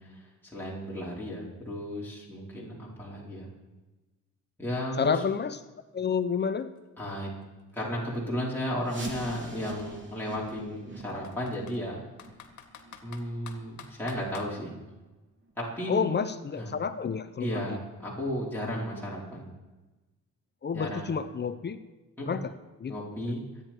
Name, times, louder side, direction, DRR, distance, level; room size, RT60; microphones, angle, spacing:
voice 1, 0.0-3.5 4.6-5.2 7.0-7.3 7.7-12.0 13.0-14.8 15.6-16.1 16.6-16.7 17.4-19.5 20.7-21.1 22.2-22.4 22.9-23.4, equal, 5° left, -6 dB, 4.6 m, -34 dB
voice 2, 5.0-5.6 5.9-6.7 15.9-17.7 20.6-21.8 22.3-22.5 22.8-23.0 23.2-23.3, left 6 dB, 35° left, 11 dB, 0.8 m, -29 dB
Computer keyboard, 6.2-6.3 6.6-8.6 9.3-9.5 9.8-9.9 10.5-11.8 12.2-14.5, left 8 dB, 65° left, 1.8 m, -49 dB
sound 1, 8.8-14.4 14.8-14.9 15.4-15.5 16.1-16.2 16.8-16.9, right 1 dB, 40° right, 3.2 m, -45 dB
24.5 x 9.6 x 4.6 m, 1.1 s
cardioid pair, 90°, 30 cm